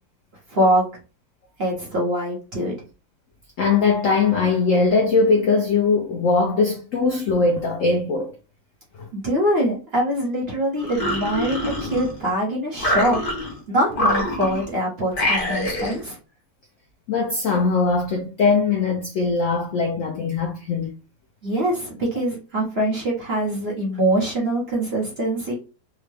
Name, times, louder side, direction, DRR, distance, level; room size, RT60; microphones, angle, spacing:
voice 1, 0.5-0.9 1.6-2.7 9.1-13.2 13.7-16.2 21.4-25.5, right 1 dB, 40° right, 1.0 m, -23 dB
voice 2, 3.6-8.3 9.0-9.1 17.1-20.9, left 4 dB, 75° left, 0.7 m, -20 dB
sound 1, 10.8-12.3 12.8-13.6 13.9-14.7 15.1-16.0, left 1 dB, 40° left, 0.8 m, -25 dB
3.5 x 2.1 x 3.3 m
omnidirectional pair, 1.9 m